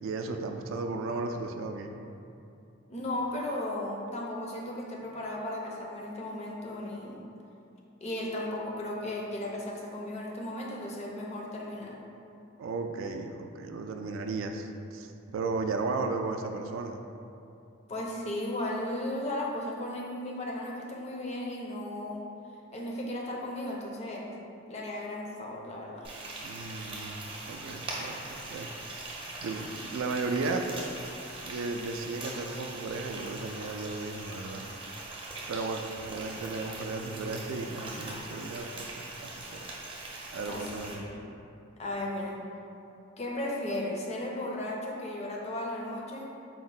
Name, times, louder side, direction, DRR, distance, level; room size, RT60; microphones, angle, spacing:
voice 1, 0.0-1.9 12.6-17.0 26.4-28.7 29.4-30.6 31.4-34.7 35.5-39.6 40.3-41.0, right 3 dB, 80° right, 5 dB, 0.3 m, -35 dB
voice 2, 2.9-7.2 8.0-12.0 17.9-22.3 22.7-24.3 24.7-26.1 40.5-41.2 41.8-42.4 43.2-46.4, left 1 dB, 35° left, -1 dB, 0.5 m, -35 dB
Frying (food), 26.0-40.9, right 2 dB, 25° right, 0.5 m, -41 dB
4.4 x 2.1 x 4.0 m, 2.7 s
head